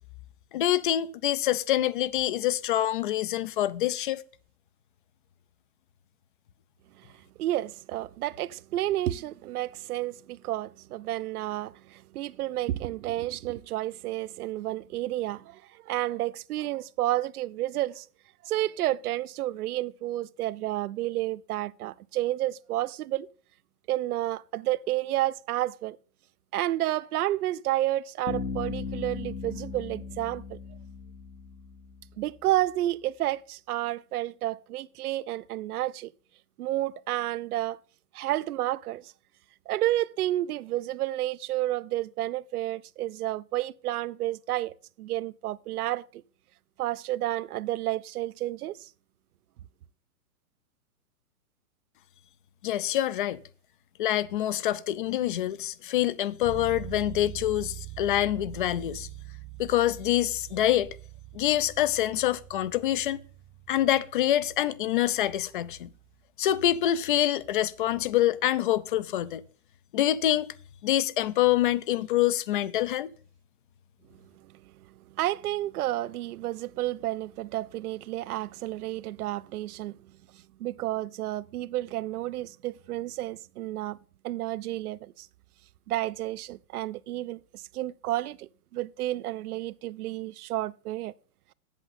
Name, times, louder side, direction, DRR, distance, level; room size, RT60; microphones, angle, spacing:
voice 1, 0.5-4.2 52.6-53.4 54.0-59.1 59.6-60.9 61.3-63.2 63.7-65.9 66.4-69.4 69.9-70.5 70.8-73.1, left 13 dB, 35° left, 0.4 m, -26 dB
voice 2, 7.4-18.1 18.4-23.3 23.9-26.0 26.5-30.6 32.2-36.1 36.6-37.8 38.1-39.1 39.7-46.2 46.8-48.9 75.2-80.0 80.6-84.0 84.2-85.3 85.9-91.1, right 15 dB, 70° right, 0.6 m, -31 dB
Bass guitar, 28.3-32.0, left 5 dB, 65° left, 2.5 m, -37 dB
sound 1, 56.4-66.1, right 18 dB, 25° right, 0.5 m, -44 dB
8.1 x 7.9 x 4.0 m
hypercardioid pair, 135°, 46 cm